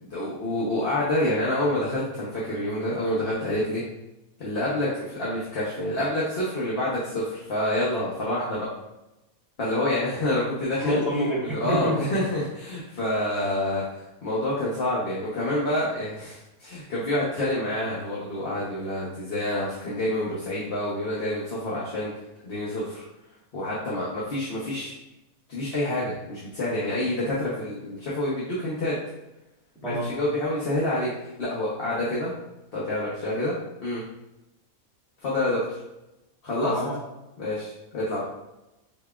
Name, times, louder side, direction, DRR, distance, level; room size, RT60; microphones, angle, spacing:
voice 1, 0.1-3.8 4.4-8.7 9.6-11.0 11.5-22.1 22.4-23.0 23.5-24.9 25.5-29.0 29.9-32.3 32.7-33.5 33.8-34.0 35.2-35.8 36.4-36.7 37.4-38.2, left 1 dB, 45° left, -7 dB, 1.0 m, -27 dB
voice 2, 10.8-12.1 29.8-30.1 36.6-37.0, equal, ahead, -7 dB, 1.3 m, -26 dB
5.8 x 3.4 x 2.4 m, 0.94 s
omnidirectional pair, 1.6 m